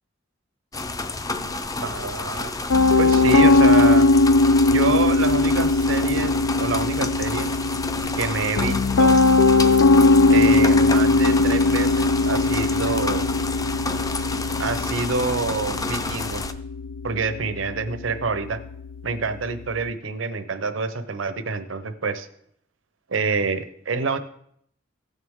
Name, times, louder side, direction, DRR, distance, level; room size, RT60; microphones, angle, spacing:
sound 1, 0.7-16.5, left 3 dB, 20° left, 0.5 m, -30 dB
voice 1, 1.8-2.5 3.0-4.1 4.7-7.5 8.2-9.2 10.3-13.3 14.6-16.4 17.0-18.6 19.0-22.3 23.1-24.2, right 4 dB, 80° right, 11 dB, 0.8 m, -27 dB
Piano, 2.7-19.8, left 3 dB, 85° left, 0.4 m, -20 dB
16.0 x 6.5 x 3.6 m, 0.71 s
head